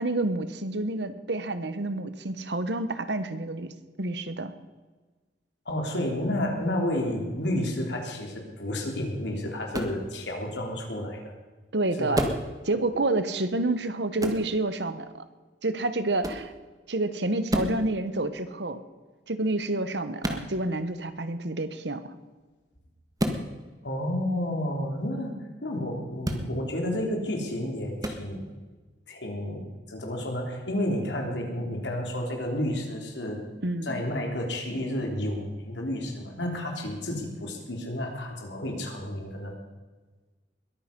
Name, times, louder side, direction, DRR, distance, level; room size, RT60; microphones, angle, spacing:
voice 1, 0.0-3.7 4.0-4.5 11.7-12.3 12.6-15.2 15.6-16.5 16.9-18.8 19.3-22.1 33.6-34.0, right 2 dB, 75° right, 11 dB, 1.3 m, -29 dB
voice 2, 5.7-11.3 12.0-12.2 23.8-28.5 29.1-33.4 33.8-39.5, left 1 dB, 85° left, 1 dB, 3.6 m, -31 dB
sound 1, 9.7-10.0 12.1-12.5 14.2-14.5 16.2-16.5 17.5-17.8 20.2-20.5 23.2-23.4 26.2-26.5 28.0-28.2, equal, 20° right, 1.7 m, -29 dB
21.5 x 9.6 x 5.4 m, 1.3 s
head